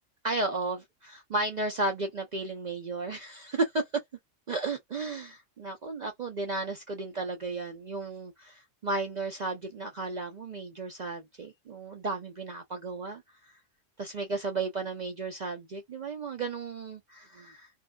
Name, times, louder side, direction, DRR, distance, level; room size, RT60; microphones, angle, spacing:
voice 1, 0.2-3.9 4.5-13.6 14.0-17.7, right 3 dB, 65° right, 0.4 m, -34 dB
2.6 x 2.2 x 2.2 m
omnidirectional pair, 1.3 m